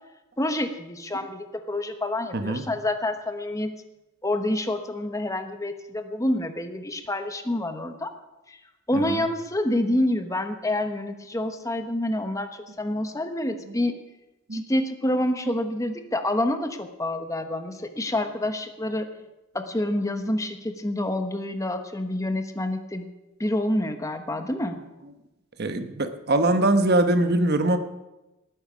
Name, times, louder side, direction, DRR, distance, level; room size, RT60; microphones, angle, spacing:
voice 1, 0.4-3.7 4.2-8.1 8.5-8.6 8.9-13.9 14.5-19.1 19.5-23.1 23.4-24.8, left 1 dB, 15° left, 7 dB, 1.1 m, -27 dB
voice 2, 8.9-9.2 14.5-14.6 25.6-27.8, right 2 dB, 50° right, 8 dB, 1.2 m, -22 dB
19.0 x 9.6 x 6.2 m, 0.99 s
head